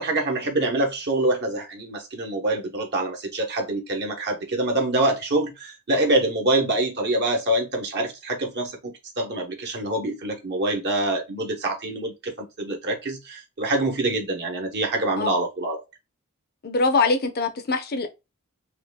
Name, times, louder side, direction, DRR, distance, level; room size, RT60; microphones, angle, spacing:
voice 1, 0.0-15.8, right 2 dB, 50° right, 1.0 m, -25 dB
voice 2, 16.6-18.1, left 3 dB, 45° left, 0.7 m, -23 dB
5.5 x 2.5 x 2.2 m
head